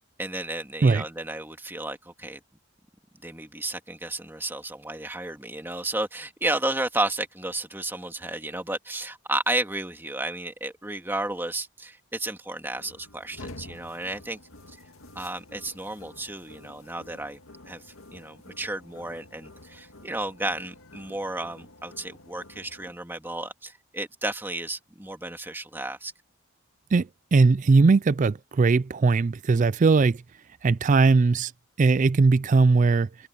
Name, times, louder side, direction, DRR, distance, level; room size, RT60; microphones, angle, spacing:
voice 1, 0.2-2.4 3.2-14.4 14.7-14.8 15.2-17.4 17.6-26.1, right 2 dB, 10° right, 2.2 m, -32 dB
sound 1, 12.7-22.9, left 2 dB, 85° left, 2.0 m, -49 dB
voice 2, 26.9-30.2 30.6-31.5 31.8-33.3, right 4 dB, 40° right, 0.4 m, -20 dB
head